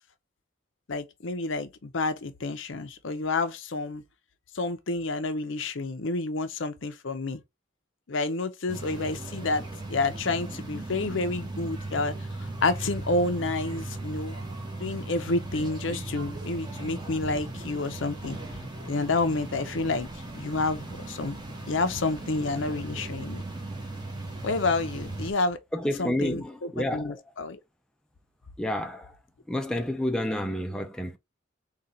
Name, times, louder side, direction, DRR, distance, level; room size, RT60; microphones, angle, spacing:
voice 1, 0.9-4.0 4.5-7.4 8.1-14.3 14.8-18.4 18.9-20.1 20.3-21.3 21.7-23.4 24.4-25.6 26.0-27.6, left 3 dB, 75° left, 0.7 m, -29 dB
sound 1, 8.7-25.3, right 2 dB, 20° right, 1.1 m, -37 dB
voice 2, 25.7-27.2 28.6-29.2 29.5-31.2, left 1 dB, 5° left, 0.5 m, -29 dB
3.9 x 2.4 x 4.2 m
head